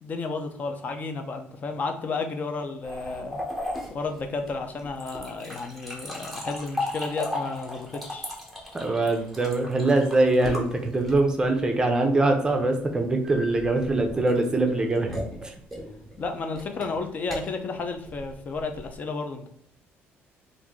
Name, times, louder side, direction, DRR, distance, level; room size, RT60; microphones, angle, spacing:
voice 1, 0.0-3.4 3.9-8.3 16.2-19.5, left 4 dB, 35° left, 6 dB, 0.5 m, -32 dB
sound 1, 2.8-11.5 13.2-19.0, left 1 dB, ahead, 1.1 m, -36 dB
voice 2, 8.7-15.1 15.4-15.5, right 2 dB, 15° right, 4 dB, 0.6 m, -23 dB
3.0 x 2.6 x 3.6 m, 0.66 s
cardioid pair, 125°, 5 cm